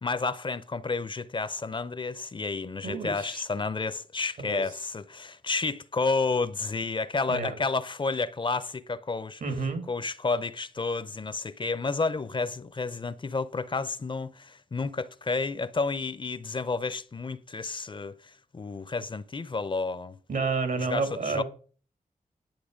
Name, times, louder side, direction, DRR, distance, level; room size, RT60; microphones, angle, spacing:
voice 1, 0.0-9.4 9.9-20.2 20.8-21.4, left 4 dB, 35° left, 0.6 m, -31 dB
voice 2, 2.8-3.4 4.4-4.6 7.3-7.5 9.4-9.8 20.3-21.4, right 4 dB, 75° right, 2.4 m, -30 dB
11.0 x 7.7 x 5.1 m
wide cardioid pair, 90°, 14 cm